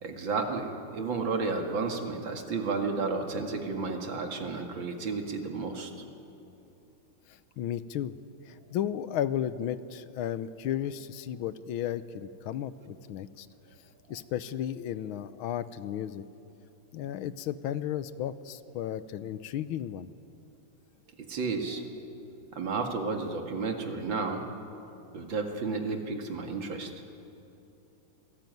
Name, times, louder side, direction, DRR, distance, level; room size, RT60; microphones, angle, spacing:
voice 1, 0.0-5.9 21.2-21.8 22.5-24.4 25.1-26.9, right 4 dB, 65° right, 4 dB, 2.7 m, -32 dB
voice 2, 7.3-8.2 8.5-13.5 14.1-16.3 16.9-20.1, left 10 dB, 80° left, 14 dB, 1.6 m, -34 dB
26.5 x 18.5 x 9.3 m, 2.8 s
omnidirectional pair, 2.3 m